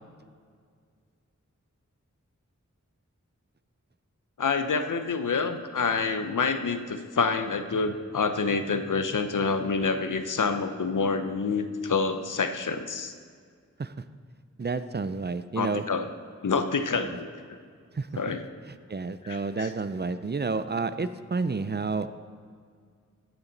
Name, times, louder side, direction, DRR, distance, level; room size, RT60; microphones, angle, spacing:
voice 1, 4.4-13.1 15.6-16.1 16.4-17.3 18.2-18.4 19.2-19.7, left 4 dB, 90° left, 9 dB, 0.7 m, -27 dB
voice 2, 14.6-15.8 17.1-17.2 17.9-18.1 18.7-22.1, right 4 dB, 35° right, 12 dB, 0.4 m, -30 dB
15.0 x 7.1 x 4.0 m, 2.1 s
wide cardioid pair, 50°, 30 cm